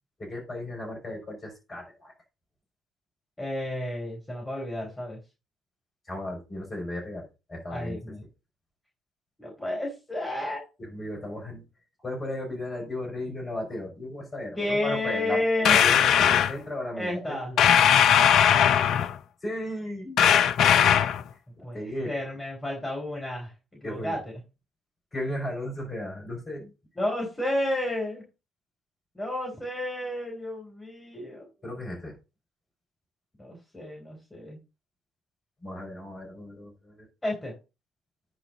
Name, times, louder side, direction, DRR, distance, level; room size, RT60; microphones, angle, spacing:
voice 1, 0.2-2.1 6.1-8.0 10.8-11.6 12.0-17.6 19.4-20.2 21.6-22.1 23.8-24.2 25.1-26.7 31.6-32.2 35.6-37.1, left 1 dB, 30° left, 0 dB, 5.4 m, -35 dB
voice 2, 3.4-5.2 7.7-8.2 9.4-10.6 14.6-15.8 17.0-17.5 21.6-23.5 23.8-24.2 27.0-28.2 29.1-31.5 33.4-34.6 37.2-37.5, left 1 dB, 10° left, -2 dB, 4.3 m, -31 dB
sound 1, 15.6-16.5 17.6-19.2 20.2-21.2, left 9 dB, 55° left, 0.4 m, -19 dB
9.8 x 6.5 x 4.1 m, 0.28 s
figure-of-eight pair, 50°, 0 cm